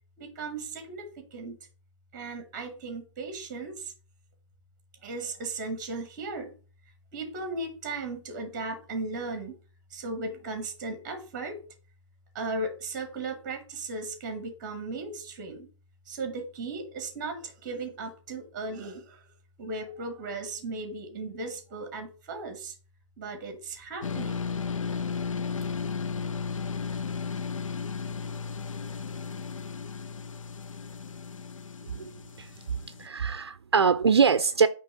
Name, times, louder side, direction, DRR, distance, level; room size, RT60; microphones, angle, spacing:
voice 1, 0.2-1.6 2.1-3.9 5.0-6.5 7.1-9.6 9.9-11.6 12.3-15.7 16.1-19.3 19.6-22.7 23.2-24.4 25.0-25.2, right 3 dB, 10° right, 8 dB, 0.9 m, -36 dB
sound 1, 24.0-33.1, left 5 dB, 90° left, 0.5 m, -34 dB
voice 2, 33.0-34.7, right 6 dB, 55° right, 12 dB, 0.5 m, -23 dB
8.9 x 3.1 x 5.7 m, 0.38 s
hypercardioid pair, 175°, 16 cm